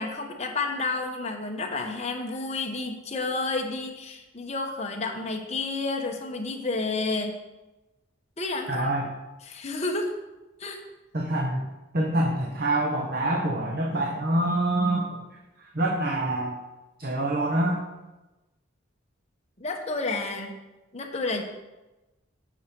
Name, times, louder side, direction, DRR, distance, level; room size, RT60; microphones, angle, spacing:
voice 1, 0.0-7.3 8.4-8.9 9.5-10.1 10.6-10.8 19.6-20.6 20.9-21.4, left 3 dB, 35° left, 2 dB, 1.1 m, -30 dB
voice 2, 8.7-9.1 11.1-11.6 11.9-15.2 15.6-16.6 17.0-17.8, right 1 dB, 50° right, -1 dB, 1.0 m, -26 dB
8.9 x 6.4 x 4.6 m, 1.1 s
head